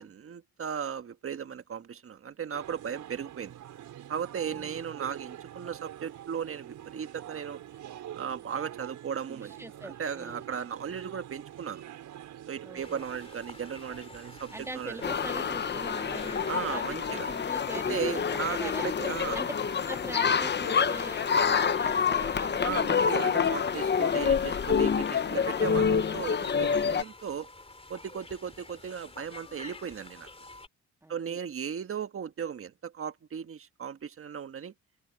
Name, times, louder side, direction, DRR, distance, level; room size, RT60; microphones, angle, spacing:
voice 1, 0.0-3.5 4.1-7.6 8.2-9.6 9.8-11.8 12.5-15.0 16.5-17.3 17.9-19.4 22.6-27.5 27.9-30.3 31.1-34.7, right 7 dB, 45° right, 1.6 m, -36 dB
sound 1, 2.5-17.4, right 11 dB, 75° right, 6.4 m, -46 dB
voice 2, 4.5-4.9 9.3-10.5 12.6-13.1 14.5-18.9 19.3-19.5 19.8-23.6 25.3-25.8 31.0-31.4, right 2 dB, 10° right, 2.2 m, -43 dB
sound 2, 12.8-30.7, left 3 dB, 20° left, 3.1 m, -49 dB
sound 3, 15.0-27.0, left 6 dB, 35° left, 1.0 m, -27 dB
open air
cardioid pair, 90°, 30 cm